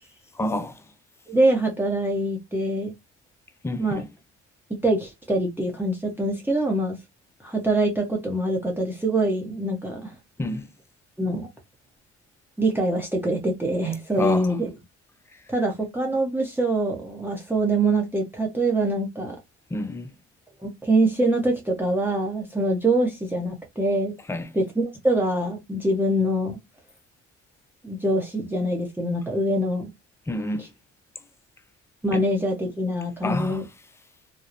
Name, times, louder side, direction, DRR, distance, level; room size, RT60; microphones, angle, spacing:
voice 1, 0.4-0.8 3.6-4.0 10.4-10.7 14.2-14.5 19.7-20.1 24.3-24.5 30.3-30.7 32.1-32.2 33.2-33.6, left 2 dB, 10° left, 0.3 m, -28 dB
voice 2, 1.3-2.9 3.8-4.0 4.8-7.0 7.4-10.2 11.2-11.5 12.6-14.7 15.5-19.4 20.6-24.1 24.5-26.6 27.8-29.9 30.6-30.7 32.0-33.6, right 1 dB, 5° right, 0.7 m, -24 dB
2.8 x 2.0 x 2.4 m
cardioid pair, 90°, 30 cm